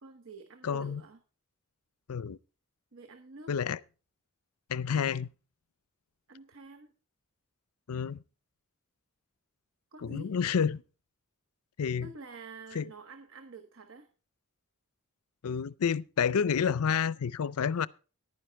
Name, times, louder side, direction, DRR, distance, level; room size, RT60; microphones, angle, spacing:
voice 1, 0.0-1.2 2.9-3.5 6.3-6.9 9.9-10.3 12.0-14.1, right 4 dB, 65° right, 1.1 m, -48 dB
voice 2, 0.6-1.0 2.1-2.4 3.5-3.8 4.7-5.3 7.9-8.2 10.0-10.8 11.8-12.1 12.7-12.9 15.4-17.9, left 7 dB, 85° left, 0.5 m, -29 dB
11.0 x 9.8 x 4.4 m
head